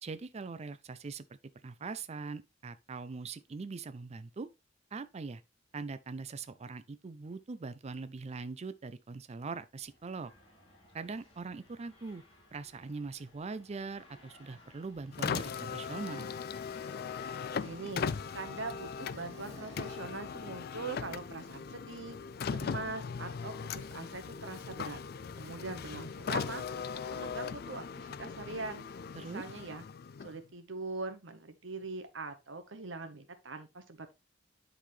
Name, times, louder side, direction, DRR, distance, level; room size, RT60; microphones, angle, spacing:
voice 1, 0.0-1.2 1.6-4.5 4.9-5.4 5.7-10.3 10.9-12.2 12.5-16.3 29.1-29.4, right 4 dB, 35° right, 0.4 m, -42 dB
sound 1, 9.8-20.0, left 1 dB, 30° left, 3.1 m, -58 dB
Car, 15.1-30.5, left 6 dB, 55° left, 0.4 m, -39 dB
voice 2, 17.5-18.1 18.3-22.2 22.5-25.0 25.3-26.6 27.1-28.9 29.3-29.8 30.2-34.1, right 3 dB, 85° right, 1.2 m, -42 dB
10.0 x 4.0 x 3.2 m
head